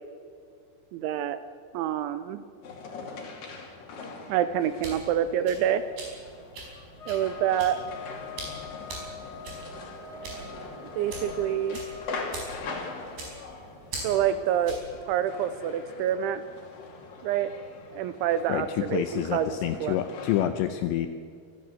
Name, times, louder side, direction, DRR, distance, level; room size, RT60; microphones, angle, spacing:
voice 1, 0.9-1.4 1.7-2.4 4.3-5.9 7.1-7.8 11.0-11.8 14.0-14.8 15.1-16.4 17.2-17.5 17.9-20.0, right 10 dB, 80° right, 12 dB, 2.8 m, -27 dB
sound 1, 2.6-20.5, left 3 dB, 50° left, 3.7 m, -42 dB
sound 2, 4.5-15.0, right 2 dB, 50° right, 7.0 m, -42 dB
sound 3, 7.0-12.4, left 4 dB, 10° left, 2.6 m, -44 dB
voice 2, 18.5-21.1, left 12 dB, 85° left, 9 dB, 2.6 m, -28 dB
27.0 x 12.5 x 7.9 m, 2.2 s
omnidirectional pair, 5.9 m